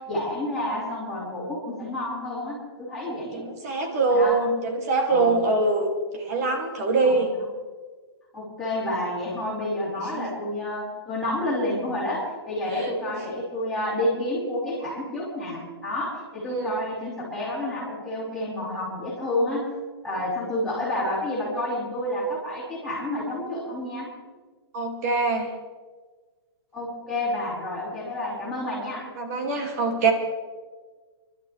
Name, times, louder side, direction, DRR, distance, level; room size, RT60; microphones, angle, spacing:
voice 1, 0.0-3.4 4.1-4.4 5.1-5.3 7.0-7.4 8.3-19.6 20.0-24.1 26.7-29.1, left 1 dB, ahead, -10 dB, 5.1 m, -29 dB
voice 2, 3.3-7.3 10.1-10.3 12.7-12.9 16.5-16.8 24.7-25.5 29.2-30.1, right 3 dB, 35° right, 2 dB, 2.4 m, -24 dB
29.5 x 12.5 x 3.4 m, 1.4 s
hypercardioid pair, 170°, 14 cm